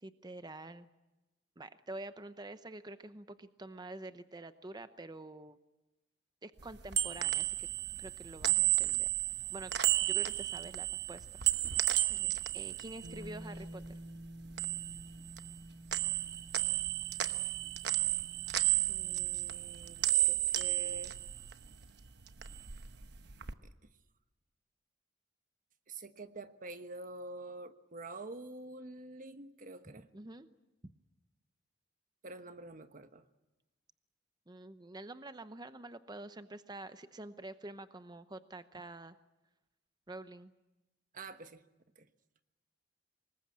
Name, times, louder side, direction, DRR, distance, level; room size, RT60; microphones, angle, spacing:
voice 1, 0.0-0.9 1.6-5.6 6.4-7.7 8.0-9.1 9.5-9.7 10.0-11.3 12.5-14.0 29.9-30.5 30.8-30.9 34.5-39.2 40.1-40.5, right 2 dB, 25° right, 11 dB, 0.8 m, -47 dB
sound 1, 6.6-13.9 14.2-15.6 15.9-21.9 22.2-23.5, right 14 dB, 65° right, 1.0 m, -33 dB
voice 2, 12.1-12.4 18.9-21.2 23.6-23.7 25.9-30.1 32.2-33.3 41.1-41.6 42.0-42.1, right 2 dB, 45° right, 9 dB, 1.2 m, -47 dB
Bass guitar, 13.0-19.3, right 1 dB, 80° right, 5.7 m, -50 dB
25.0 x 20.5 x 8.7 m, 1.0 s
head